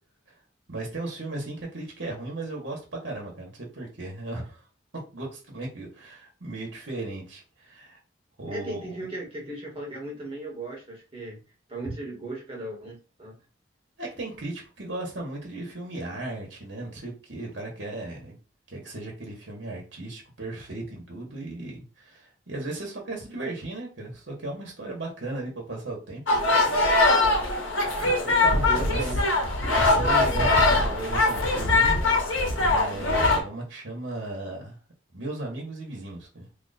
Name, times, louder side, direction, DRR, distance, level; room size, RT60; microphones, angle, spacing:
voice 1, 0.7-4.6 5.1-8.0 8.4-8.9 14.0-18.4 18.7-26.2 26.5-27.0 28.0-29.1 29.6-32.0 32.5-34.8 35.1-36.5, right 2 dB, 65° right, -1 dB, 1.3 m, -36 dB
voice 2, 8.5-11.4 11.7-13.4 28.2-29.4, right 1 dB, 30° right, -3 dB, 1.5 m, -37 dB
sound 1, 26.3-33.4, left 2 dB, 75° left, 1.1 m, -22 dB
2.9 x 2.5 x 4.1 m, 0.33 s
head